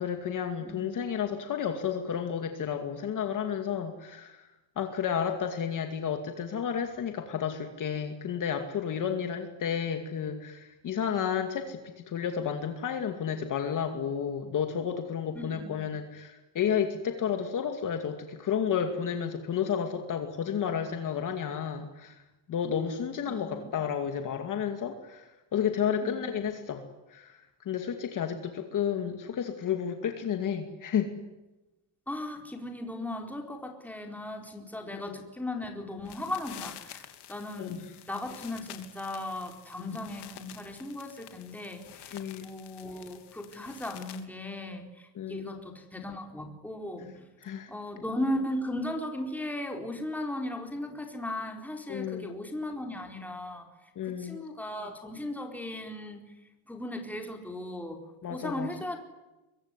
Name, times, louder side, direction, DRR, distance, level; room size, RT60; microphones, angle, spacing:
voice 1, 0.0-4.5 4.8-22.2 22.5-26.8 27.1-31.1 35.1-35.2 37.6-37.9 39.8-40.0 42.1-42.5 45.2-45.5 47.4-47.7 51.9-52.3 54.0-54.4 58.2-58.7, left 8 dB, 40° left, 6 dB, 2.4 m, -31 dB
voice 2, 0.6-1.1 15.3-15.8 23.2-23.7 26.0-26.2 32.1-37.8 38.1-47.3 47.7-53.7 54.0-56.2 56.7-59.0, left 1 dB, 5° left, 3 dB, 4.2 m, -37 dB
sound 1, 36.0-44.2, left 12 dB, 55° left, 3.0 m, -49 dB
25.0 x 22.5 x 9.8 m, 1.0 s
cardioid pair, 170°, 49 cm